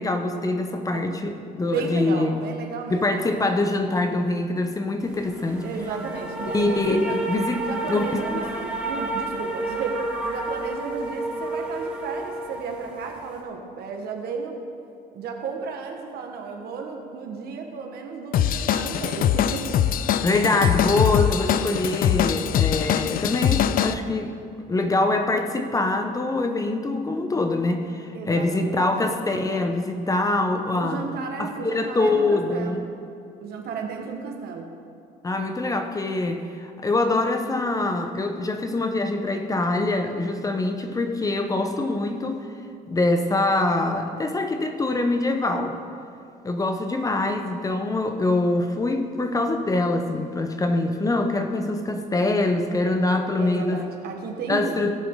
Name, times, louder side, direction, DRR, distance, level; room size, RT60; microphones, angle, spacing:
voice 1, 0.0-1.3 1.6-2.4 2.9-5.7 6.5-8.2 20.2-24.4 24.7-31.0 31.4-32.9 35.2-42.5 42.9-45.8 46.4-53.8 54.5-55.0, left 2 dB, 20° left, 5 dB, 0.8 m, -24 dB
voice 2, 0.9-1.4 1.7-3.6 5.6-7.2 7.6-14.6 15.1-19.8 28.1-28.9 30.5-32.9 33.4-34.7 53.4-54.8, right 5 dB, 65° right, 2 dB, 1.5 m, -33 dB
sound 1, 5.0-13.4, right 2 dB, 5° right, 2.6 m, -31 dB
Drum kit / Drum, 18.3-23.9, left 10 dB, 60° left, 0.4 m, -22 dB
17.0 x 6.6 x 3.8 m, 2.4 s
cardioid pair, 110°, 17 cm